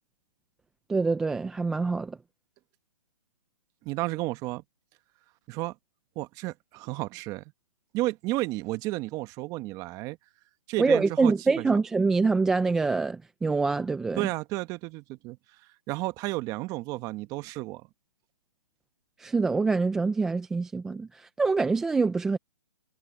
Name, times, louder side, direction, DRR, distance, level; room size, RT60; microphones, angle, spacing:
voice 1, 0.9-2.2 10.8-14.3 19.2-22.4, right 4 dB, 5° right, 0.3 m, -25 dB
voice 2, 3.8-4.6 5.5-5.7 6.2-7.4 7.9-10.2 10.7-11.7 14.2-15.4 15.9-17.9, right 19 dB, 20° right, 1.0 m, -32 dB
hypercardioid pair, 155°, 19 cm